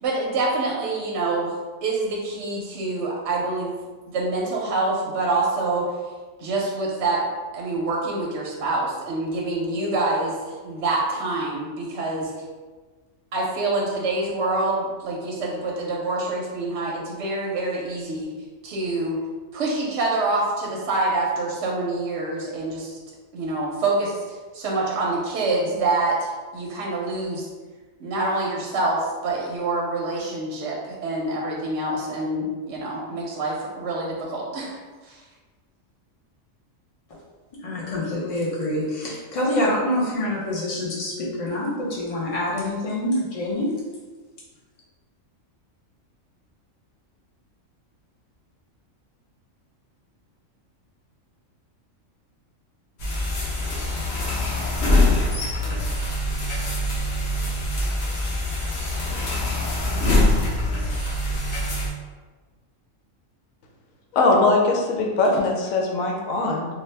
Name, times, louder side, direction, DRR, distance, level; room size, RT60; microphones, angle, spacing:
voice 1, 0.0-1.5 1.8-3.7 4.1-5.9 6.4-7.2 7.5-12.3 13.3-18.3 18.6-19.2 19.5-23.0 23.3-24.2 24.5-27.5 28.0-34.8 35.0-35.2, right 2 dB, 65° right, -3 dB, 0.8 m, -26 dB
voice 2, 37.6-43.7, left 1 dB, 35° left, -5 dB, 0.7 m, -26 dB
sound 1, 53.0-61.9, left 1 dB, 55° left, 0.9 m, -24 dB
voice 3, 64.1-66.7, left 2 dB, 90° left, 0 dB, 1.0 m, -21 dB
2.8 x 2.2 x 3.2 m, 1.4 s
omnidirectional pair, 1.4 m